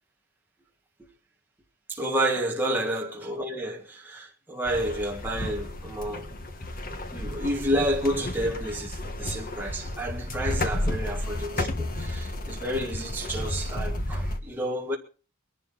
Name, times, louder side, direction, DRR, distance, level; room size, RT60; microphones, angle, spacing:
voice 1, 1.9-6.3 7.1-15.0, right 1 dB, 10° right, 1.6 m, -30 dB
sound 1, 4.6-14.4, left 1 dB, 40° left, 1.6 m, -32 dB
22.5 x 11.5 x 4.1 m
head